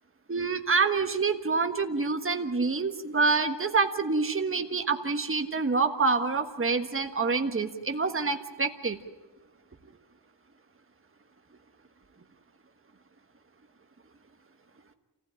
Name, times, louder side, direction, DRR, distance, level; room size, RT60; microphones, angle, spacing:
voice 1, 0.3-9.0, right 4 dB, 30° right, 5 dB, 1.5 m, -27 dB
28.0 x 16.0 x 8.9 m, 1.2 s
wide cardioid pair, 100°, 45 cm